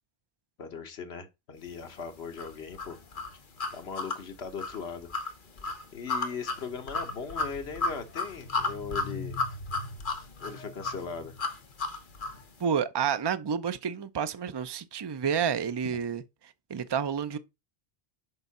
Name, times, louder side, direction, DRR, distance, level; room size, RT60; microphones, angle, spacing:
voice 1, 0.6-3.0 3.7-5.1 5.9-9.4 10.4-11.4, left 5 dB, 75° left, 1.4 m, -39 dB
sound 1, 2.4-12.4, left 3 dB, 50° left, 1.2 m, -34 dB
voice 2, 12.6-16.2 16.7-17.4, right 7 dB, 35° right, 0.4 m, -29 dB
6.9 x 4.6 x 4.1 m
omnidirectional pair, 1.1 m